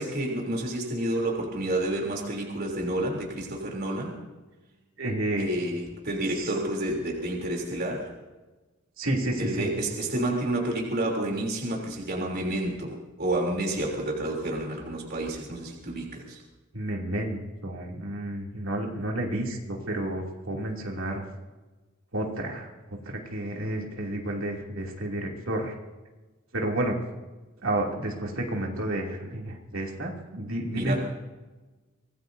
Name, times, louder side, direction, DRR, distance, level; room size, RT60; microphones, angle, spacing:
voice 1, 0.0-4.2 5.4-8.1 9.4-16.4 30.7-31.0, right 1 dB, 45° right, -1 dB, 3.3 m, -30 dB
voice 2, 5.0-5.5 6.4-6.5 9.0-9.7 16.7-21.2 22.1-22.7 23.0-25.8 26.5-27.0 27.6-31.0, right 1 dB, 75° right, -1 dB, 2.8 m, -30 dB
25.0 x 19.0 x 2.7 m, 1.2 s
head